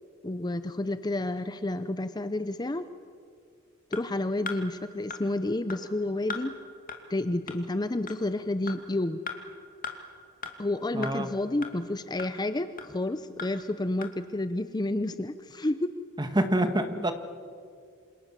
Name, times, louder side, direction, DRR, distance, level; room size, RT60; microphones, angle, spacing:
voice 1, 0.2-2.8 3.9-6.5 7.1-9.2 10.6-15.9, left 2 dB, 20° left, 11 dB, 0.7 m, -30 dB
sound 1, 3.9-4.0 4.5-4.6 5.1-5.2 5.7-5.8 6.3-6.4 6.9-7.0 7.5-7.6 8.1-8.2 8.7-8.8 9.3-9.4 9.8-9.9 10.4-10.5 11.0-11.1 11.6-11.7 12.2-12.3 12.8-12.9 13.4-13.5 14.0-14.1, left 5 dB, 45° left, 2.6 m, -36 dB
voice 2, 10.9-11.3 16.2-17.1, right 1 dB, 20° right, 8 dB, 1.8 m, -26 dB
28.0 x 27.0 x 7.5 m, 2.2 s
head